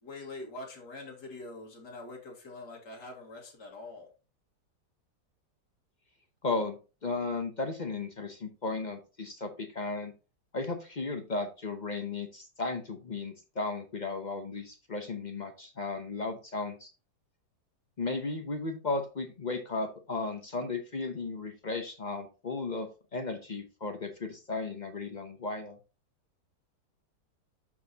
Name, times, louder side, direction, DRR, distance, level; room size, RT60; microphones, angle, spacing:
voice 1, 0.0-4.1, left 2 dB, 85° left, 0 dB, 2.4 m, -44 dB
voice 2, 6.4-10.1 10.5-16.9 18.0-25.8, left 3 dB, 40° left, 6 dB, 0.6 m, -35 dB
12.0 x 4.2 x 2.8 m, 0.32 s
omnidirectional pair, 1.8 m